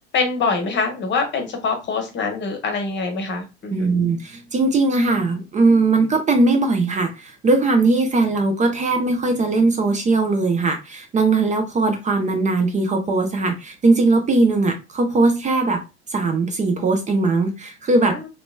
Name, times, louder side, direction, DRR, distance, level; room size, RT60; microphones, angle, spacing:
voice 1, 0.1-3.9 18.1-18.3, left 4 dB, 30° left, 4 dB, 1.0 m, -24 dB
voice 2, 3.7-15.8 16.1-18.3, right 3 dB, 20° right, 4 dB, 0.5 m, -19 dB
3.2 x 2.9 x 2.2 m, 0.27 s
figure-of-eight pair, 70°, 35 cm